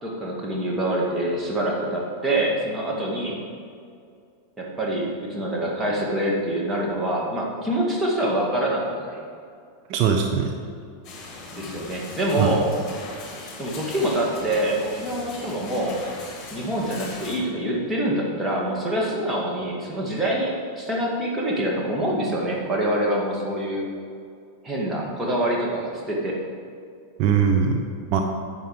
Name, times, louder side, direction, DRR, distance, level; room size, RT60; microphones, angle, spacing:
voice 1, 0.0-3.4 4.6-9.2 11.6-12.7 13.6-16.0 16.5-23.8 24.6-26.4, right 1 dB, 10° right, -3 dB, 2.3 m, -25 dB
voice 2, 9.9-10.6 12.4-12.6 27.2-28.2, right 6 dB, 40° right, 3 dB, 0.8 m, -21 dB
sound 1, 11.0-17.4, left 3 dB, 25° left, 2.5 m, -39 dB
10.5 x 7.5 x 5.0 m, 2.3 s
figure-of-eight pair, 90°, 0 cm